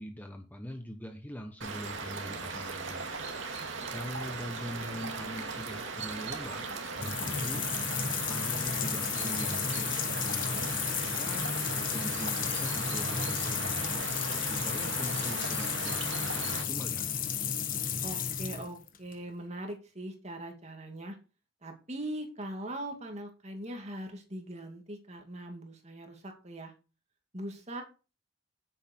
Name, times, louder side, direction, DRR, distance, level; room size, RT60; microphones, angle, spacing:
voice 1, 0.0-3.0 3.9-6.6 7.0-9.9 10.2-11.5 11.9-14.1 14.4-17.1, equal, 10° left, 5 dB, 0.9 m, -42 dB
sound 1, 1.6-16.6, right 4 dB, 65° right, 2.3 m, -38 dB
voice 2, 3.6-3.9 10.3-10.7 18.0-21.2 21.6-26.7 27.3-27.8, right 1 dB, 30° right, 3 dB, 2.4 m, -41 dB
sound 2, 6.7-19.1, left 7 dB, 40° left, 1.2 m, -33 dB
9.8 x 8.2 x 4.5 m, 0.33 s
head